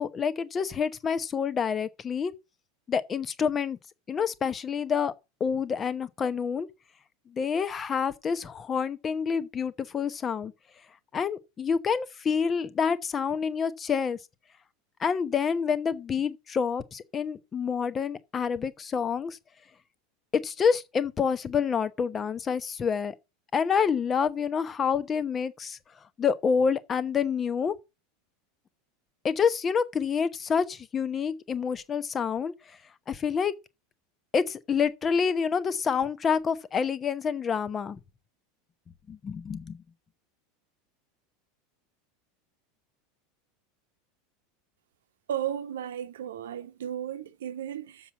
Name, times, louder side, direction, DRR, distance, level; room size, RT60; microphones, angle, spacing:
voice 1, 0.0-2.3 2.9-3.8 4.1-5.1 5.4-6.7 7.3-10.5 11.1-14.2 15.0-19.4 20.4-23.1 23.5-25.8 26.2-27.7 29.2-32.5 33.1-33.5 34.3-38.0 39.1-39.8, left 6 dB, 30° left, 0.9 m, -28 dB
voice 2, 45.3-48.1, right 10 dB, 70° right, 0.9 m, -34 dB
7.1 x 5.6 x 7.3 m
figure-of-eight pair, 80°, 0 cm